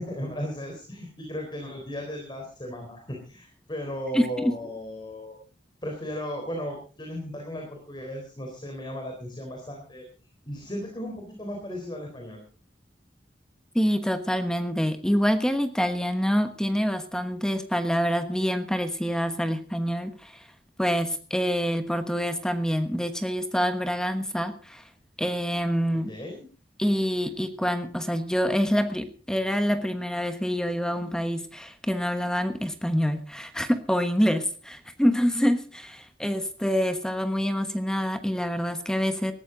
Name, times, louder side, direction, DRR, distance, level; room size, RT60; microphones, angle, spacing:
voice 1, 0.0-5.4 5.8-10.0 10.5-12.4 26.1-26.3, left 1 dB, 25° left, 1 dB, 3.9 m, -36 dB
voice 2, 4.1-4.5 13.7-20.5 20.8-24.8 25.2-26.1 26.8-39.3, equal, 5° left, 8 dB, 1.2 m, -26 dB
19.0 x 14.5 x 3.9 m, 0.37 s
head